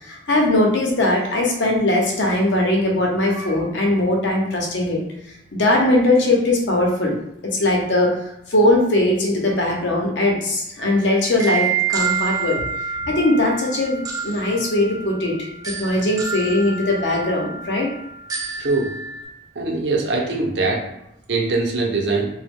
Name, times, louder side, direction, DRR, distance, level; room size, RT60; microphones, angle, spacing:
voice 1, 0.0-5.0 5.5-7.2 7.5-8.1 8.5-12.6 12.9-17.9, left 1 dB, 70° left, -1 dB, 0.8 m, -20 dB
sound 1, 10.8-19.2, right 6 dB, 20° right, 0.3 m, -28 dB
voice 2, 18.6-18.9 19.5-20.8 21.3-22.3, right 3 dB, 70° right, -1 dB, 0.7 m, -22 dB
3.0 x 2.2 x 3.5 m, 0.82 s
head